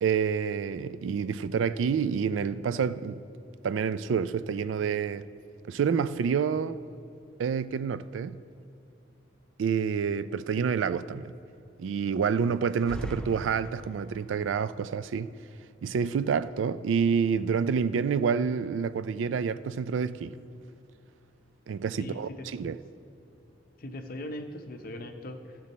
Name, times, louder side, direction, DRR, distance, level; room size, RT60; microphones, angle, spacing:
voice 1, 0.0-3.2 3.6-5.2 5.7-6.8 7.4-8.4 9.6-11.3 11.8-15.3 15.8-20.4 21.7-22.8, right 6 dB, 90° right, 0.3 m, -28 dB
sound 1, 12.6-14.3, equal, 5° left, 0.4 m, -41 dB
voice 2, 22.0-22.6 23.8-25.6, left 1 dB, 50° left, 0.6 m, -40 dB
15.0 x 6.2 x 4.1 m
head